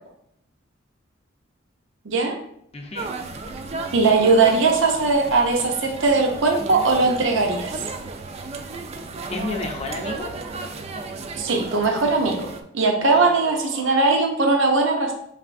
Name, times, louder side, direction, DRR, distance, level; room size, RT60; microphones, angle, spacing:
voice 1, 2.1-2.4 3.9-7.8 11.4-12.5 12.7-15.1, right 3 dB, 70° right, 1 dB, 0.6 m, -19 dB
voice 2, 2.7-3.1 9.3-10.4 13.0-14.0, left 2 dB, 30° left, 2 dB, 0.6 m, -32 dB
sound 1, 3.0-12.6, right 3 dB, 35° right, 0.4 m, -34 dB
5.4 x 3.3 x 2.5 m, 0.71 s
head